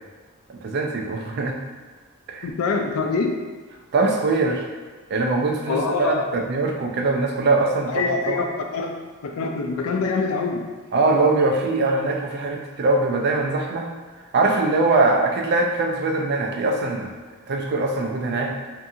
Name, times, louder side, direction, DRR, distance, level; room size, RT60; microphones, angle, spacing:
voice 1, 0.6-1.6 2.3-2.5 3.9-4.6 5.1-8.4 10.9-13.9 14.3-17.1 17.5-18.7, right 3 dB, 50° right, 1 dB, 0.4 m, -22 dB
voice 2, 2.4-3.4 5.7-6.3 7.9-8.5 8.7-8.9 9.2-10.6, left 4 dB, 80° left, 3 dB, 0.4 m, -24 dB
2.7 x 2.6 x 2.4 m, 1.4 s
head